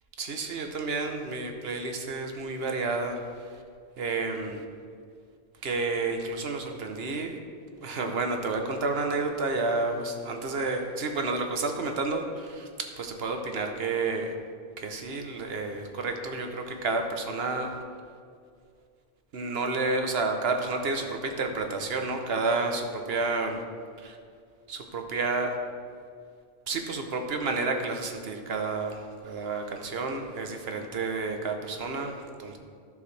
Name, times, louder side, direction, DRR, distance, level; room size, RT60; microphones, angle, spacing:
voice 1, 0.2-3.2 4.0-4.6 5.6-7.4 7.7-14.3 14.8-17.7 19.3-23.6 24.0-24.2 24.7-25.6 26.7-32.6, right 3 dB, 70° right, 4 dB, 1.1 m, -30 dB
12.5 x 7.0 x 3.3 m, 2.2 s
omnidirectional pair, 1.1 m